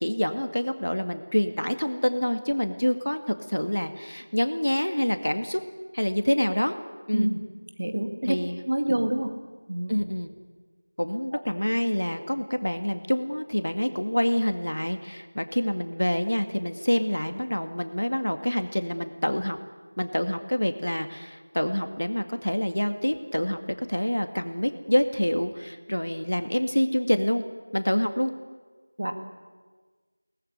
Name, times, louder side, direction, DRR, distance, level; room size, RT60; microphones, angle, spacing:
voice 1, 0.0-5.6 5.9-6.8 7.1-7.3 8.3-8.6 8.9-9.0 9.9-10.3 11.0-19.6 20.0-27.4 27.7-28.3, equal, 90° left, 8 dB, 2.1 m, -27 dB
voice 2, 7.8-8.4 8.7-9.3 9.7-10.0 29.0-29.1, right 1 dB, 35° right, 7 dB, 2.1 m, -26 dB
24.5 x 19.0 x 9.7 m, 1.4 s
figure-of-eight pair, 180°, 0 cm